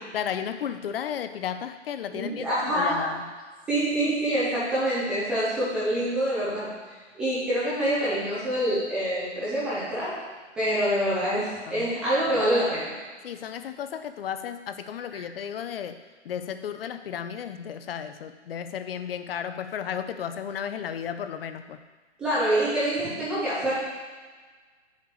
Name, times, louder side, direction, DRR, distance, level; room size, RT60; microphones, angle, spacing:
voice 1, 0.1-3.2 11.1-11.3 11.7-11.9 13.2-16.0 16.2-21.8, left 8 dB, 50° left, 10 dB, 0.6 m, -34 dB
voice 2, 2.1-3.0 3.7-6.7 7.1-10.1 10.6-12.9 22.2-23.7, right 1 dB, 5° right, -11 dB, 0.4 m, -26 dB
6.6 x 4.8 x 6.8 m, 1.4 s
hypercardioid pair, 150°, 36 cm